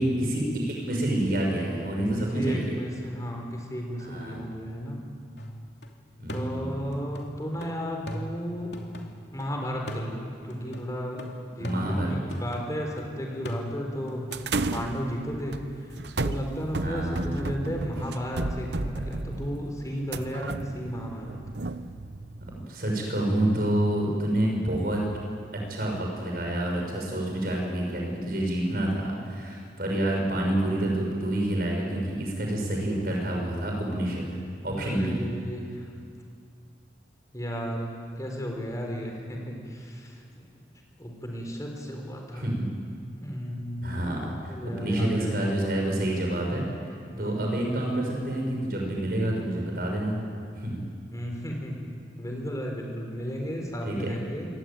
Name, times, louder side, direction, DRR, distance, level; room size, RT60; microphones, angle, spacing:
voice 1, 0.0-2.7 4.0-4.4 6.2-6.7 11.6-12.1 16.8-17.3 22.7-25.0 25.7-34.3 34.6-35.2 42.3-42.7 43.8-46.7 47.2-50.2 50.5-50.8 53.8-54.1, right 1 dB, 55° right, 0 dB, 6.7 m, -28 dB
voice 2, 2.3-5.0 6.3-8.7 9.3-11.2 11.6-14.2 14.5-21.4 34.8-35.9 37.3-40.7 41.0-42.5 43.2-44.0 44.5-45.6 47.1-47.6 51.1-54.5, equal, 20° left, 1 dB, 4.3 m, -34 dB
sound 1, 5.4-5.9 6.3-9.5 9.9-13.0 13.5-14.9, equal, 80° left, 2.8 m, -39 dB
sound 2, 14.3-22.7, right 2 dB, 75° right, 0.9 m, -33 dB
25.0 x 22.0 x 9.2 m, 2.3 s
head